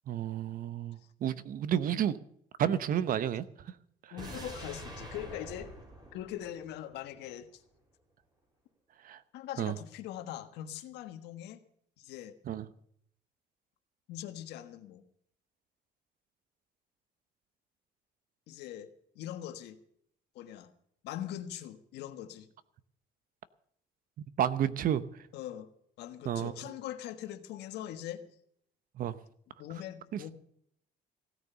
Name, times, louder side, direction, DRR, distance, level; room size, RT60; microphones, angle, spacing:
voice 1, 0.1-2.2 2.6-3.7 4.0-4.4 9.0-9.2 9.6-9.8 12.4-12.7 24.4-25.3 26.2-26.5 29.0-29.2 30.1-30.2, right 10 dB, 55° right, 15 dB, 0.9 m, -31 dB
voice 2, 4.1-5.7 6.1-7.6 9.3-11.6 12.0-12.4 14.1-15.0 18.5-18.9 19.1-19.8 20.3-20.7 21.0-22.5 25.3-25.7 26.0-28.2 29.6-30.3, left 12 dB, 80° left, 9 dB, 1.4 m, -42 dB
sound 1, 4.2-7.3 7.6-7.7, right 1 dB, 25° right, 4.5 m, -46 dB
16.5 x 9.5 x 6.9 m, 0.68 s
cardioid pair, 110°, 17 cm